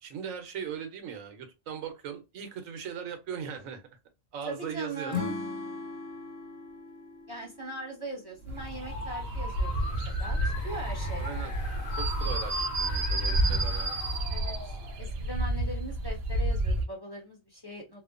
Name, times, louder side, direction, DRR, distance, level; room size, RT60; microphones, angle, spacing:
voice 1, 0.0-3.8 4.3-5.2 11.2-11.5 12.0-14.0, right 7 dB, 85° right, 1.1 m, -39 dB
voice 2, 4.4-5.3 7.3-11.2 14.3-14.5 15.0-18.0, right 2 dB, 20° left, 1.0 m, -40 dB
Acoustic guitar / Strum, 5.1-8.4, left 5 dB, 75° left, 1.1 m, -38 dB
sound 1, 8.4-15.6, left 1 dB, 40° left, 0.8 m, -39 dB
sound 2, 8.5-16.8, right 1 dB, 60° right, 0.7 m, -30 dB
2.8 x 2.1 x 2.4 m
omnidirectional pair, 1.4 m